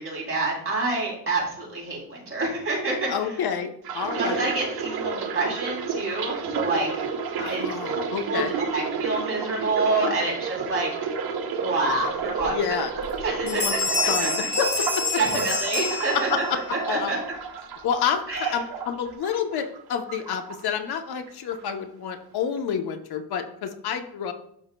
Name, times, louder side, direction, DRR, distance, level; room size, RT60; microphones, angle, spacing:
voice 1, 0.0-3.1 4.2-7.0 7.4-8.0 8.3-10.9 11.6-12.6 13.2-14.5 15.2-16.4 16.9-17.2 18.3-18.5, right 3 dB, 35° right, -3 dB, 3.2 m, -27 dB
voice 2, 3.1-4.5 7.4-8.5 12.4-12.9 13.4-13.7 14.1-15.2 16.1-16.6 16.9-17.2 17.8-24.3, left 7 dB, 75° left, 6 dB, 0.9 m, -29 dB
sound 1, 3.8-19.8 20.1-21.0 21.3-21.6, right 5 dB, 70° right, 1.1 m, -31 dB
Bell, 12.4-12.5 13.0-13.2 13.5-16.6, left 3 dB, 25° left, 2.8 m, -27 dB
12.0 x 6.0 x 2.2 m, 0.69 s
wide cardioid pair, 150°, 39 cm